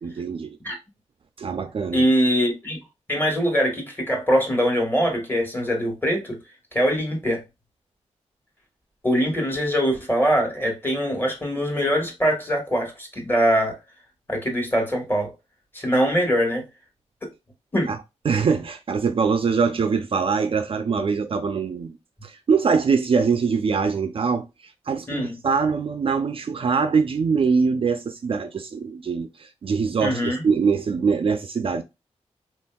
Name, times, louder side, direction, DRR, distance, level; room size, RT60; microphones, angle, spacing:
voice 1, 0.0-0.6 1.4-2.1 17.9-18.0 18.2-22.0 22.2-24.5 24.9-31.8, right 5 dB, 50° right, 0.4 m, -23 dB
voice 2, 1.9-2.8 3.1-6.4 6.7-7.4 9.0-13.8 14.3-15.3 15.7-16.6 17.7-17.9 25.1-25.4 30.0-30.4, equal, 20° left, 1.3 m, -22 dB
3.8 x 2.6 x 2.2 m
wide cardioid pair, 105°, 11 cm